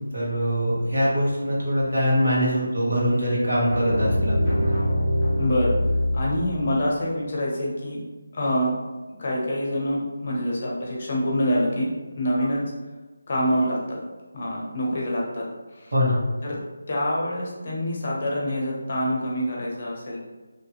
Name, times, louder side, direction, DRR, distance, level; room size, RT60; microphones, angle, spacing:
voice 1, 0.1-4.6 12.4-12.5 15.9-16.2, equal, 65° right, -6 dB, 1.2 m, -23 dB
sound 1, 3.7-6.8, left 1 dB, 15° left, 1.2 m, -24 dB
voice 2, 5.4-5.8 6.1-8.0 8.3-8.7 9.2-11.9 12.2-12.6 13.3-14.0 14.3-15.5 15.8-15.9 16.4-16.6 16.9-20.2, equal, 40° left, -3 dB, 0.6 m, -26 dB
2.8 x 2.6 x 2.2 m, 1.2 s
figure-of-eight pair, 155°, 0 cm